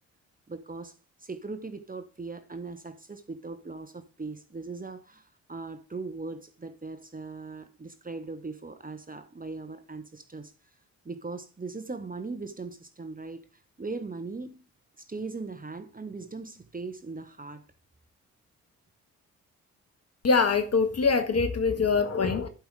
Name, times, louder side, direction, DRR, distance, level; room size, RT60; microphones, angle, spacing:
voice 1, 0.5-10.5 11.0-13.4 13.8-14.6 15.0-17.6, right 3 dB, 20° right, 1.3 m, -39 dB
voice 2, 20.2-22.5, left 4 dB, 40° left, 1.8 m, -24 dB
11.5 x 5.4 x 4.9 m
hypercardioid pair, 40°, 40 cm